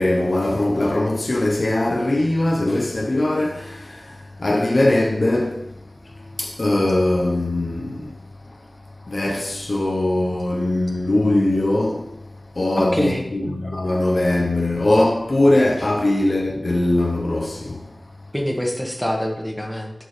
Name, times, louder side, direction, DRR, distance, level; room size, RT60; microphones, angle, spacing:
voice 1, 0.0-4.1 4.4-5.7 6.4-8.2 9.1-12.1 12.6-17.8, left 1 dB, 60° left, 1.0 m, -21 dB
voice 2, 12.7-13.2 18.3-19.9, equal, 5° left, 1.6 m, -25 dB
11.0 x 4.6 x 3.4 m
wide cardioid pair, 60°, 0 cm